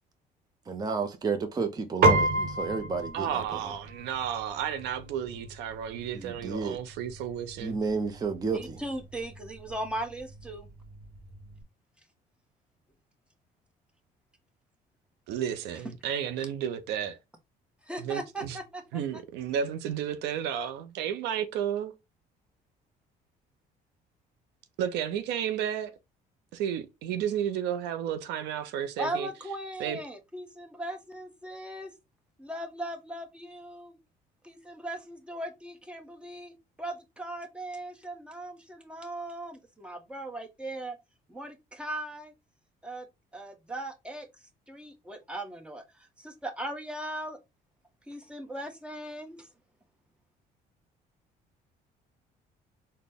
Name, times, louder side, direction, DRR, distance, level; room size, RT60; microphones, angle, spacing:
voice 1, 0.7-3.7 6.1-6.8 7.6-8.8, right 4 dB, 25° right, 0.5 m, -31 dB
Piano, 2.0-11.6, right 2 dB, 60° right, 1.0 m, -32 dB
voice 2, 3.1-7.8 15.3-17.2 18.0-18.6 18.9-21.9 24.8-26.0 26.5-29.3 29.8-30.0, right 9 dB, 90° right, 0.5 m, -32 dB
voice 3, 8.5-10.7 17.8-18.8 29.0-31.9 32.4-33.9 34.4-41.0 41.3-42.3 42.8-43.1 43.3-44.3 44.7-47.4 48.1-49.5, right 1 dB, 5° right, 0.9 m, -38 dB
4.1 x 2.1 x 3.4 m
cardioid pair, 110°, 17 cm